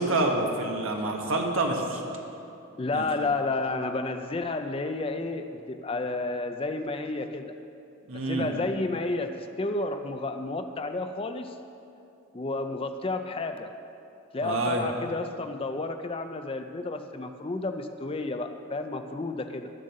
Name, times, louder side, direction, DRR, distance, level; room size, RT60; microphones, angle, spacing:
voice 1, 0.0-2.0 2.9-3.0 8.1-8.5 14.4-14.8, right 2 dB, 70° right, 1 dB, 1.4 m, -27 dB
voice 2, 2.8-7.5 8.1-11.6 12.3-13.7 14.3-19.7, left 2 dB, 25° left, 7 dB, 0.4 m, -31 dB
11.5 x 7.6 x 6.4 m, 2.7 s
head